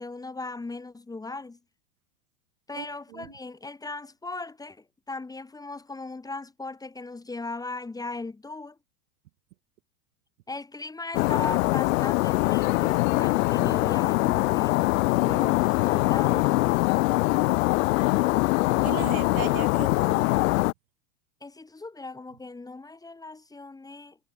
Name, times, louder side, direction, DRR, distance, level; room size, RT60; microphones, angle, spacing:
voice 1, 0.0-1.6 2.7-8.8 10.5-14.9 15.2-16.7 21.4-24.2, left 3 dB, 10° left, 2.1 m, -38 dB
voice 2, 2.7-3.4 18.8-20.2, right 17 dB, 70° right, 2.8 m, -37 dB
sound 1, 11.1-20.7, left 22 dB, 65° left, 0.5 m, -23 dB
supercardioid pair, 130°, 43 cm